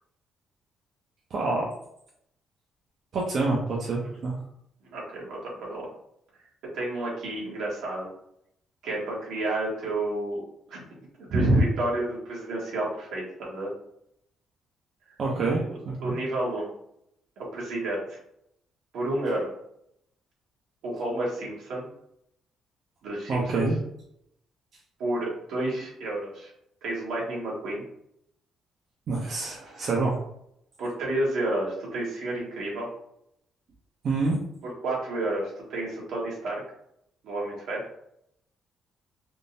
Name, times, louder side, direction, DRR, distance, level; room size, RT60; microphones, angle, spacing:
voice 1, 1.3-1.7 3.1-4.4 11.3-11.6 15.2-16.2 23.3-23.7 29.1-30.2 34.0-34.4, right 3 dB, 60° right, -4 dB, 0.7 m, -26 dB
voice 2, 4.9-5.9 6.7-8.1 8.8-10.4 10.7-10.8 11.2-13.7 15.5-16.7 17.4-18.2 18.9-19.5 20.8-21.8 23.0-23.6 25.0-26.5 26.8-27.8 30.8-32.9 34.6-36.6 37.2-37.8, right 1 dB, 85° right, -4 dB, 1.4 m, -31 dB
3.6 x 2.6 x 2.6 m, 0.74 s
cardioid pair, 90°, 0 cm